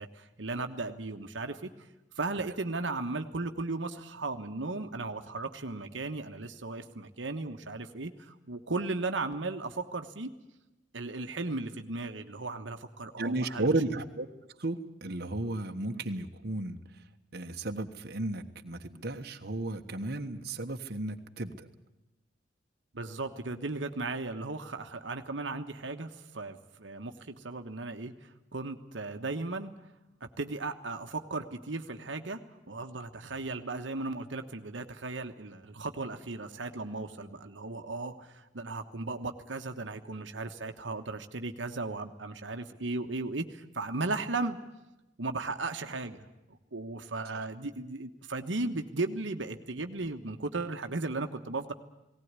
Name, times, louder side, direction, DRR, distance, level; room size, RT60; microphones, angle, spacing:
voice 1, 0.0-1.9 2.1-10.3 10.9-13.7 22.9-29.7 30.2-32.4 32.7-44.6 45.2-51.7, right 3 dB, 80° right, 6 dB, 1.3 m, -36 dB
voice 2, 13.2-14.3 14.6-16.8 17.3-21.7, right 2 dB, 60° right, 4 dB, 1.3 m, -33 dB
19.0 x 18.0 x 9.6 m, 0.96 s
head